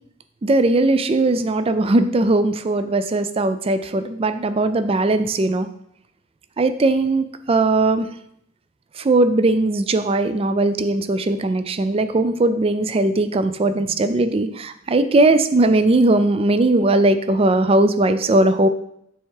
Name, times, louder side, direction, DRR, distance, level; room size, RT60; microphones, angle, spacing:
voice 1, 0.4-5.7 6.6-8.1 9.0-18.7, right 2 dB, 30° right, 11 dB, 0.4 m, -19 dB
7.0 x 3.4 x 4.8 m, 0.73 s
head